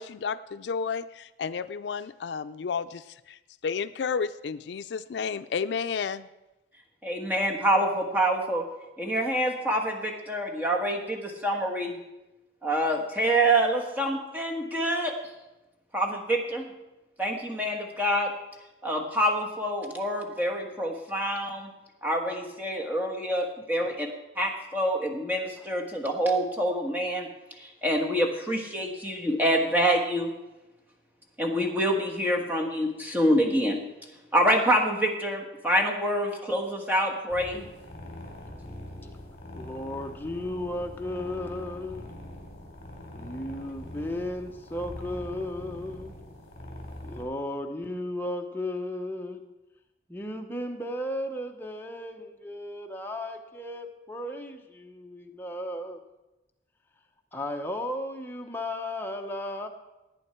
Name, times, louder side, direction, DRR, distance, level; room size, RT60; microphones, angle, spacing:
voice 1, 0.0-3.4 3.6-6.3, left 6 dB, 75° left, 12 dB, 0.4 m, -32 dB
voice 2, 7.0-8.7 9.0-12.0 12.6-15.1 15.9-16.7 17.2-18.3 18.8-21.7 22.0-24.1 24.3-27.3 27.6-30.3 31.4-33.8 34.3-37.6, right 1 dB, 10° right, 1 dB, 1.5 m, -26 dB
sound 1, 37.3-47.3, left 1 dB, 35° left, 3.2 m, -43 dB
voice 3, 39.6-42.1 43.1-46.1 47.0-49.5 50.1-56.0 57.3-59.7, left 1 dB, 10° left, 3 dB, 0.9 m, -35 dB
17.5 x 9.0 x 4.5 m, 1.0 s
head